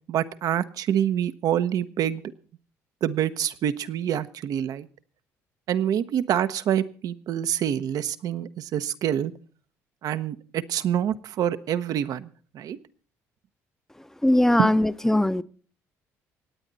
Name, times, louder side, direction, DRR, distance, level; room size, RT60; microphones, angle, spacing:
voice 1, 0.1-2.2 3.0-4.9 5.7-9.3 10.0-12.8 14.6-14.7, right 10 dB, 65° right, 12 dB, 0.9 m, -26 dB
voice 2, 14.2-15.4, left 1 dB, 5° left, 13 dB, 0.7 m, -20 dB
26.0 x 9.1 x 4.0 m, 0.42 s
supercardioid pair, 75°, 7 cm